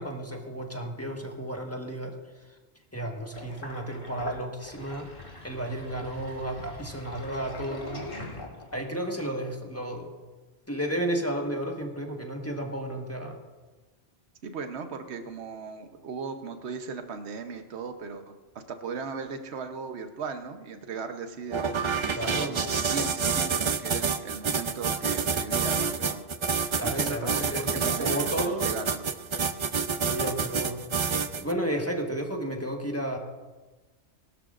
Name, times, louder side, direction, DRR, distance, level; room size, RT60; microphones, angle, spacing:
voice 1, 0.0-2.1 2.9-5.1 5.4-8.1 8.7-10.1 10.7-13.4 22.1-22.7 26.8-28.7 30.0-33.2, right 1 dB, 15° left, 1 dB, 1.4 m, -33 dB
Sink (filling or washing), 3.3-8.9, left 2 dB, 50° left, 2.6 m, -42 dB
voice 2, 14.4-26.2 26.6-29.1, right 5 dB, 70° right, 7 dB, 1.2 m, -37 dB
sound 1, 21.5-31.5, right 5 dB, 40° right, 0.4 m, -28 dB
21.0 x 13.0 x 2.5 m, 1.2 s
omnidirectional pair, 1.2 m